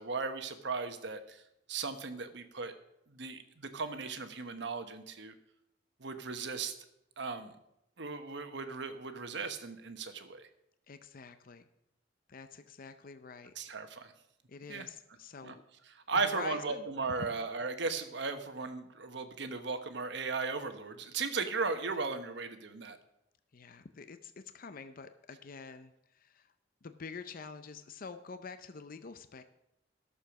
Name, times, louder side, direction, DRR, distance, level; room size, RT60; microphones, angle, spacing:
voice 1, 0.0-1.4 1.7-2.7 3.1-5.3 6.0-6.7 7.2-7.5 8.0-10.5 13.6-14.1 14.7-14.9 15.4-15.5 15.9-23.0, right 4 dB, 65° right, 8 dB, 1.1 m, -36 dB
voice 2, 10.9-11.7 12.3-13.5 14.5-15.6 16.2-16.9 17.2-17.3 23.5-26.5 26.8-29.4, left 5 dB, 50° left, 10 dB, 0.5 m, -47 dB
13.0 x 6.9 x 6.0 m, 0.82 s
head